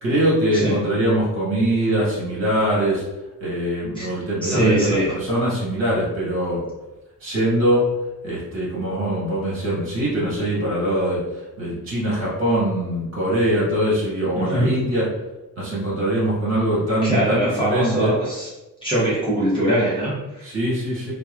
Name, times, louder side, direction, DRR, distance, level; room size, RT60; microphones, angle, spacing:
voice 1, 0.0-3.0 3.4-6.6 7.2-7.8 8.2-15.1 15.6-18.2 20.4-21.1, right 1 dB, 45° right, -7 dB, 1.5 m, -22 dB
voice 2, 4.4-5.1 14.3-14.7 17.0-18.5 18.8-20.5, right 1 dB, 15° left, -9 dB, 0.8 m, -22 dB
2.9 x 2.3 x 2.4 m, 1.0 s
cardioid pair, 140°, 35 cm